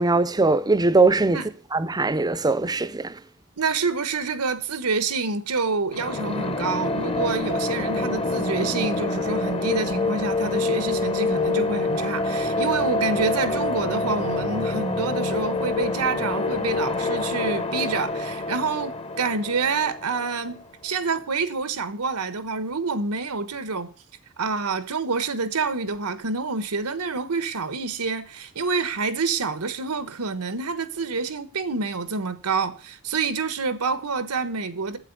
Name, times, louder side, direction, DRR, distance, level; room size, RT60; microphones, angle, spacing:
voice 1, 0.0-1.4 1.7-3.1, right 3 dB, 20° right, 0.6 m, -20 dB
voice 2, 3.6-23.9 24.4-35.0, right 4 dB, 90° right, 1.2 m, -27 dB
sound 1, 5.9-20.6, left 2 dB, 25° left, 0.9 m, -26 dB
8.6 x 8.1 x 6.7 m
head